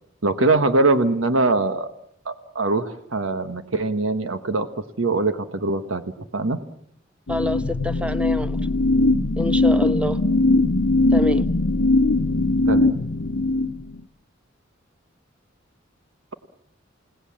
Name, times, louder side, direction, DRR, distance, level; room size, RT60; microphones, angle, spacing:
voice 1, 0.2-1.9 2.2-4.7 5.0-6.0 6.3-6.6 12.7-12.9, right 2 dB, 85° right, 9 dB, 1.3 m, -22 dB
sound 1, 7.3-14.0, left 2 dB, 70° left, 1.0 m, -20 dB
voice 2, 7.3-8.6 9.4-10.2 11.1-11.5, left 1 dB, 5° right, 10 dB, 1.1 m, -27 dB
29.5 x 18.5 x 7.4 m, 0.70 s
head